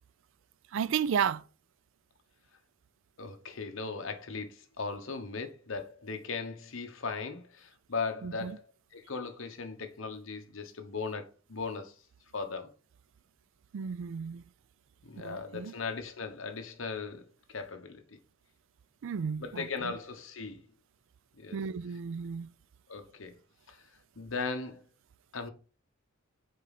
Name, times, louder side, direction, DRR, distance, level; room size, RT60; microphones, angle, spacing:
voice 1, 0.7-1.4 8.2-8.6 13.7-14.4 15.2-15.7 19.0-19.9 21.5-22.5, right 7 dB, 65° right, 0.4 m, -33 dB
voice 2, 3.2-8.6 8.9-11.9 12.3-12.7 15.0-17.3 17.5-18.2 19.4-20.6 21.3-21.6 22.9-23.4 23.7-23.8 24.2-24.8 25.3-25.5, left 4 dB, 65° left, 1.1 m, -38 dB
6.6 x 4.8 x 4.1 m
head